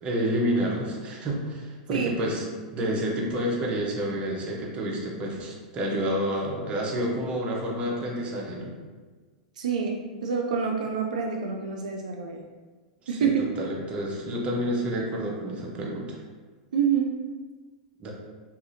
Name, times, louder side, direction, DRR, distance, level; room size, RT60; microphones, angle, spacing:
voice 1, 0.0-8.7 13.0-16.2 18.0-18.1, equal, 30° right, -2 dB, 0.6 m, -29 dB
voice 2, 9.6-12.4 13.1-13.4 16.7-17.2, right 6 dB, 85° right, 1 dB, 0.3 m, -27 dB
2.7 x 2.4 x 2.5 m, 1.4 s
hypercardioid pair, 115°, 4 cm